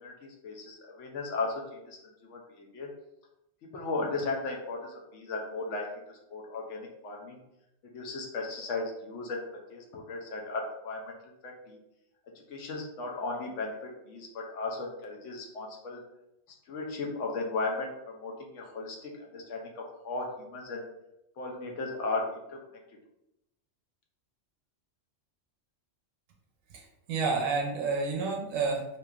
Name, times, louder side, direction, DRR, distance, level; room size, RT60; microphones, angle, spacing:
voice 1, 0.0-2.9 3.7-7.4 7.9-9.4 9.7-11.1 11.4-11.8 12.5-16.0 16.7-20.8 21.4-22.6, left 3 dB, 75° left, 0 dB, 0.9 m, -36 dB
voice 2, 26.7-28.8, right 4 dB, 80° right, 0 dB, 1.0 m, -30 dB
2.8 x 2.4 x 2.3 m, 0.87 s
omnidirectional pair, 1.3 m